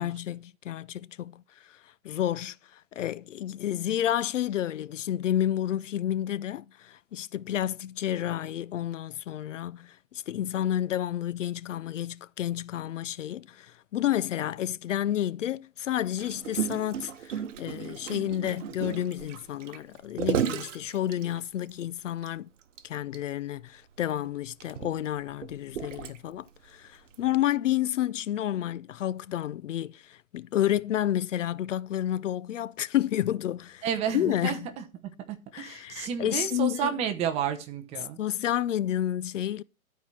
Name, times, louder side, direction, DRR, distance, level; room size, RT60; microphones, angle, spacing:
voice 1, 0.0-22.5 22.8-33.9 34.1-34.6 35.5-36.9 38.2-39.6, left 12 dB, 65° left, 0.5 m, -30 dB
Gurgling, 16.2-21.7 22.2-22.3 22.6-22.8 23.1-23.2 24.0-26.5 27.1-27.3, right 9 dB, 65° right, 0.9 m, -34 dB
voice 2, 33.8-38.2, right 9 dB, 15° right, 0.8 m, -31 dB
12.0 x 4.7 x 5.6 m
hypercardioid pair, 140°, 41 cm